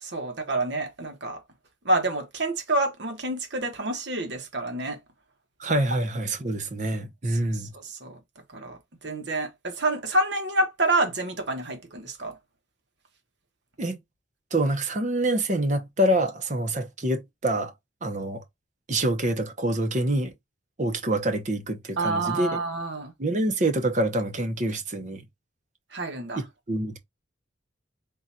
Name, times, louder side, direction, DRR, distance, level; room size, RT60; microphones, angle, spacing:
voice 1, 0.0-1.4 1.8-5.0 7.3-8.2 8.5-8.8 9.0-12.4 22.0-23.1 25.9-26.4, right 2 dB, 60° right, 1.2 m, -28 dB
voice 2, 5.6-7.7 13.8-14.0 14.5-17.7 18.0-18.4 18.9-20.3 20.8-22.6 23.2-25.2 26.4-27.0, right 1 dB, 40° right, 0.8 m, -26 dB
3.8 x 2.4 x 4.2 m
head